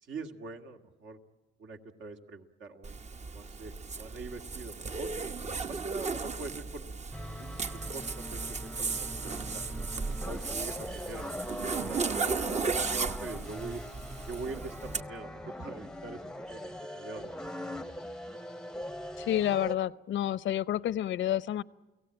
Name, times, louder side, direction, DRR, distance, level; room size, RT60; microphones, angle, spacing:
voice 1, 0.0-1.2 1.6-3.0 3.2-5.1 5.7-6.9 7.4-12.3 12.5-13.8 14.3-16.2 16.5-17.5, right 3 dB, 75° right, 4 dB, 2.1 m, -43 dB
Zipper (clothing), 2.8-15.0, right 4 dB, 35° right, 0.8 m, -35 dB
sound 1, 7.1-19.8, left 1 dB, 5° left, 0.7 m, -41 dB
voice 2, 19.2-21.6, left 12 dB, 70° left, 18 dB, 0.7 m, -29 dB
30.0 x 17.5 x 8.9 m, 1.2 s
cardioid pair, 90°, 20 cm